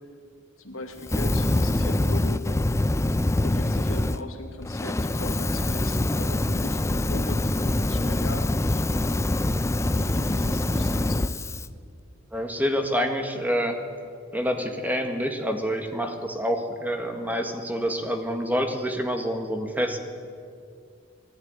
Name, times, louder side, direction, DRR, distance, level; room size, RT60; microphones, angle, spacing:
voice 1, 0.6-2.4 3.4-8.8 9.9-11.3, left 2 dB, 90° left, 4 dB, 2.5 m, -39 dB
Fire, 1.0-4.2 4.6-11.7, left 1 dB, 15° left, 0.5 m, -24 dB
voice 2, 12.3-13.8 14.3-20.0, equal, 10° right, 5 dB, 1.8 m, -27 dB
19.5 x 14.0 x 9.9 m, 2.2 s
head